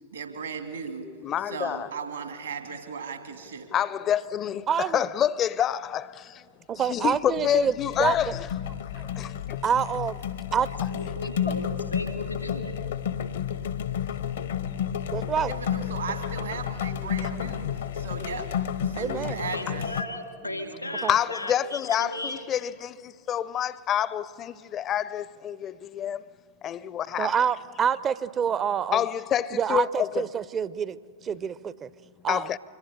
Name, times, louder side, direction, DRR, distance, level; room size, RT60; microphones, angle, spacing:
voice 1, 0.1-1.1 1.5-3.7 15.5-17.7 18.0-18.4 18.8-19.9 20.4-21.0, right 5 dB, 75° right, 2.3 m, -36 dB
voice 2, 1.2-1.9 3.7-6.5 6.9-8.5 9.2-9.6 21.1-26.2 26.6-27.4 28.9-30.2 32.3-32.6, left 10 dB, 30° left, 0.5 m, -27 dB
voice 3, 4.7-5.0 6.7-7.7 8.0-8.3 8.9-9.1 9.6-10.2 10.5-10.7 15.1-15.5 19.0-19.5 21.0-21.1 27.2-29.0 29.5-31.0 31.2-31.9 32.2-32.5, right 7 dB, 25° right, 0.5 m, -27 dB
sound 1, 6.8-7.1 7.4-20.0, left 9 dB, 65° left, 0.7 m, -31 dB
voice 4, 10.9-12.7 19.2-22.4, left 2 dB, 90° left, 2.3 m, -36 dB
25.5 x 22.0 x 6.7 m
figure-of-eight pair, 90°, 0 cm